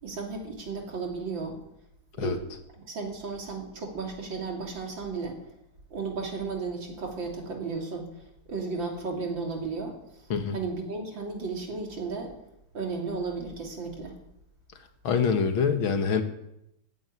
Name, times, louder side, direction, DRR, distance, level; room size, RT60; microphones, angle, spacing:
voice 1, 0.0-1.6 2.2-2.4 2.9-5.4 5.9-8.2 8.5-10.0 10.5-12.3 12.7-14.2, right 4 dB, 65° right, 1 dB, 3.6 m, -34 dB
voice 2, 15.0-16.2, left 6 dB, 75° left, 7 dB, 2.3 m, -25 dB
14.5 x 9.0 x 9.5 m, 0.82 s
omnidirectional pair, 2.3 m